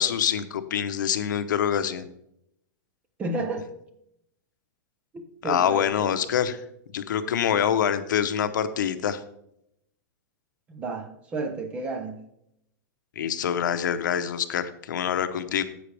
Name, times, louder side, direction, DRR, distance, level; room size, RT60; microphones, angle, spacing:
voice 1, 0.0-2.1 5.4-6.6 6.9-9.2 13.2-15.6, left 9 dB, 85° left, 11 dB, 0.8 m, -25 dB
voice 2, 3.2-3.7 5.1-6.1 10.7-12.2, right 3 dB, 10° right, 8 dB, 0.7 m, -32 dB
10.0 x 7.8 x 3.4 m, 0.76 s
supercardioid pair, 180°, 10 cm